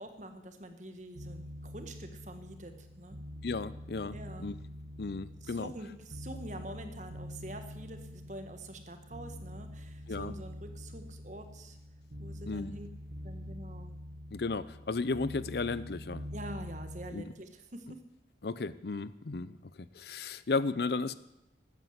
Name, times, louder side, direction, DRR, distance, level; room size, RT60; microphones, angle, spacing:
voice 1, 0.0-3.2 4.1-4.5 5.4-11.8 12.2-12.9 13.2-13.9 16.3-18.0, right 1 dB, 40° right, 7 dB, 1.4 m, -46 dB
sound 1, 1.1-17.1, equal, 65° right, 1.6 m, -45 dB
voice 2, 3.4-4.5 5.0-5.7 10.1-10.3 12.5-12.7 14.3-16.3 17.1-17.2 18.4-21.1, left 3 dB, 60° left, 16 dB, 0.5 m, -34 dB
13.5 x 9.3 x 8.0 m, 0.89 s
head